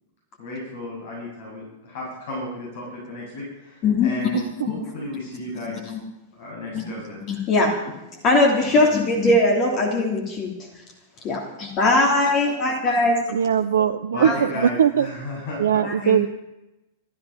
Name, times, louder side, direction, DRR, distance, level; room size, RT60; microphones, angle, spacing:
voice 1, 0.4-5.9 6.3-7.2 8.7-8.8 14.1-15.6 16.0-16.1, left 1 dB, 55° left, -4 dB, 7.7 m, -34 dB
voice 2, 3.8-4.1 4.7-4.9 5.8-6.0 6.7-6.8 7.3-7.7 8.2-10.5 11.2-13.2 14.2-14.6 15.8-16.2, left 2 dB, 35° left, -1 dB, 3.0 m, -20 dB
voice 3, 4.3-4.7 13.3-15.1 15.6-16.3, right 8 dB, 65° right, 10 dB, 0.5 m, -20 dB
15.0 x 13.0 x 5.9 m, 0.98 s
figure-of-eight pair, 95°, 0 cm